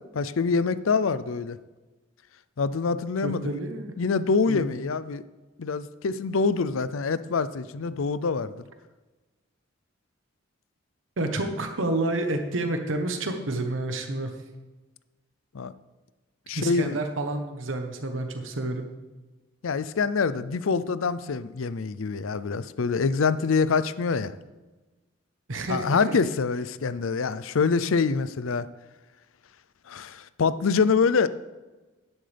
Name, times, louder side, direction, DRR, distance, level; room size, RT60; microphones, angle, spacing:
voice 1, 0.0-1.6 2.6-3.6 4.0-5.2 5.6-8.5 15.5-15.7 16.5-17.0 19.6-24.3 25.7-28.7 29.9-31.3, left 5 dB, 85° left, 15 dB, 0.5 m, -25 dB
voice 2, 3.2-3.9 4.5-4.7 11.2-14.3 16.5-18.9 25.5-26.2, right 2 dB, 75° right, 5 dB, 1.1 m, -29 dB
11.5 x 10.5 x 3.4 m, 1.2 s
head